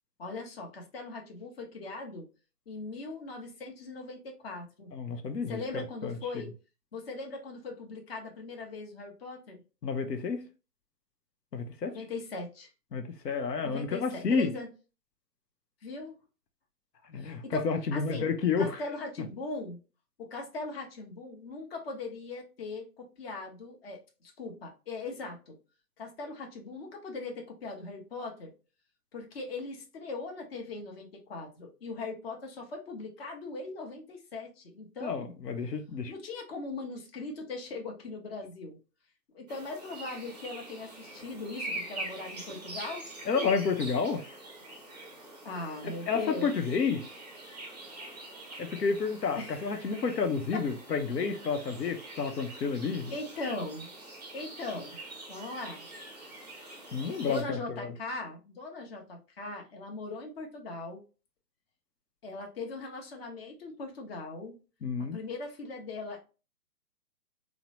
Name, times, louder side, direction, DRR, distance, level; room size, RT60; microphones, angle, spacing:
voice 1, 0.2-2.3 2.7-4.9 5.5-6.5 6.9-9.6 11.8-12.7 13.6-14.7 15.8-16.1 17.2-18.3 18.6-19.8 20.2-24.0 24.4-25.6 26.0-28.5 29.1-35.3 36.1-38.8 39.3-43.1 45.4-46.5 49.4-50.0 50.5-50.6 53.1-53.9 54.3-55.0 55.3-55.9 57.2-61.0 62.2-64.6 65.0-66.2, left 3 dB, 40° left, 0.8 m, -40 dB
voice 2, 4.9-5.6 6.0-6.2 9.8-10.4 11.5-12.0 12.9-14.5 17.1-18.8 35.0-36.1 43.3-44.2 45.8-47.0 48.6-53.2 56.9-57.9 64.8-65.2, left 5 dB, 85° left, 0.7 m, -30 dB
sound 1, 39.5-57.4, right 2 dB, 30° right, 0.4 m, -44 dB
3.0 x 2.0 x 2.7 m
hypercardioid pair, 140°, 47 cm